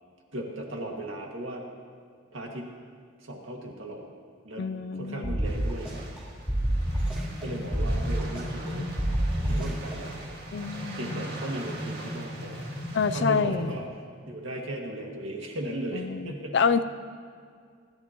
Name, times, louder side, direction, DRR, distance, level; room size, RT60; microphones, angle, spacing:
voice 1, 0.3-1.6 2.3-2.7 3.2-4.0 4.4-5.9 7.4-8.9 9.4-10.4 10.9-12.6 13.1-13.9 14.3-16.6, right 1 dB, 70° right, 0 dB, 2.0 m, -36 dB
voice 2, 4.6-5.4 10.5-11.2 12.9-13.7 15.9-16.8, left 5 dB, 55° left, 12 dB, 0.4 m, -27 dB
sound 1, 5.2-6.2 6.5-7.4 7.7-8.7 9.0-9.9, right 1 dB, 5° right, 2.8 m, -28 dB
sound 2, 5.4-13.4, right 2 dB, 50° right, 2.0 m, -44 dB
sound 3, 6.4-13.9, equal, 20° left, 1.4 m, -38 dB
26.5 x 11.5 x 3.0 m, 2.1 s
head